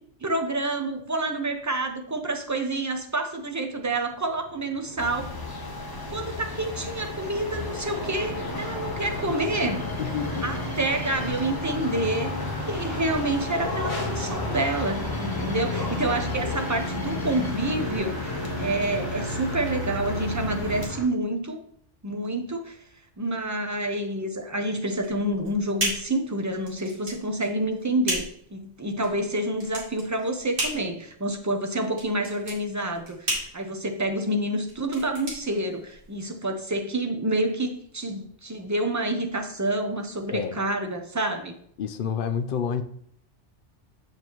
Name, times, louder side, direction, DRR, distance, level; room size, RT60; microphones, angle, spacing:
voice 1, 0.2-5.3 6.1-9.9 10.4-12.4 12.7-21.6 22.0-22.8 23.2-41.5, right 1 dB, 20° right, 4 dB, 0.5 m, -28 dB
sound 1, 4.1-21.1, left 1 dB, 45° left, 1.6 m, -36 dB
sound 2, 5.0-20.9, left 2 dB, 20° left, 0.9 m, -33 dB
voice 2, 10.0-10.5 40.3-40.6 41.8-42.8, left 7 dB, 60° left, 10 dB, 0.6 m, -29 dB
sound 3, 24.9-36.3, right 1 dB, 50° right, 2.3 m, -34 dB
7.1 x 5.6 x 3.0 m, 0.64 s
omnidirectional pair, 1.2 m